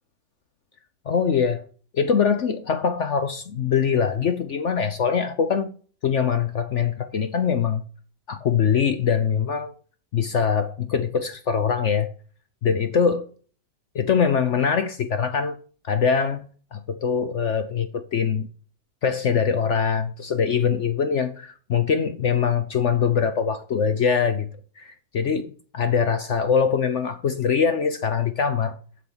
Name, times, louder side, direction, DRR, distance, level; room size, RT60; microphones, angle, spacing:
voice 1, 1.1-1.6 1.9-5.7 6.0-7.8 8.3-9.7 10.1-12.1 12.6-13.2 13.9-15.6 15.8-16.4 16.7-18.5 19.0-24.5 24.8-28.8, left 6 dB, 60° left, 0.8 m, -23 dB
7.4 x 6.3 x 7.2 m
omnidirectional pair, 2.0 m